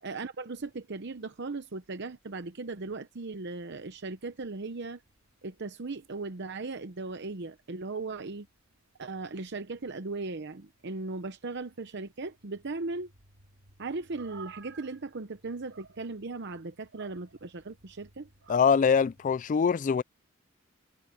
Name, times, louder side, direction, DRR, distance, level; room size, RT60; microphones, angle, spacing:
voice 1, 0.0-5.0 5.4-8.5 9.0-13.1 13.8-18.3, right 3 dB, 55° right, 0.8 m, -37 dB
sound 1, 0.6-19.5, right 5 dB, 85° right, 2.5 m, -59 dB
voice 2, 18.5-20.0, left 6 dB, 40° left, 0.3 m, -23 dB
head